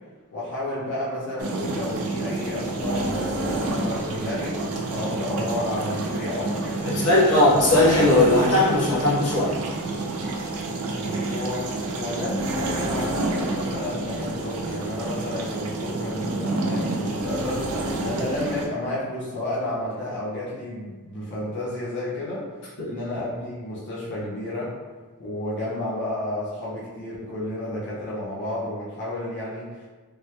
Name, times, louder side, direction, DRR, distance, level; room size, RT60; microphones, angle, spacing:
voice 1, 0.3-7.2 10.9-22.5 22.9-24.8 25.2-29.9, left 1 dB, 50° left, -7 dB, 0.6 m, -31 dB
sound 1, 1.4-18.7, right 2 dB, 70° right, 0.4 m, -29 dB
voice 2, 6.8-9.6 22.8-22.9, left 1 dB, 85° left, -6 dB, 0.9 m, -19 dB
3.4 x 2.1 x 2.8 m, 1.3 s
head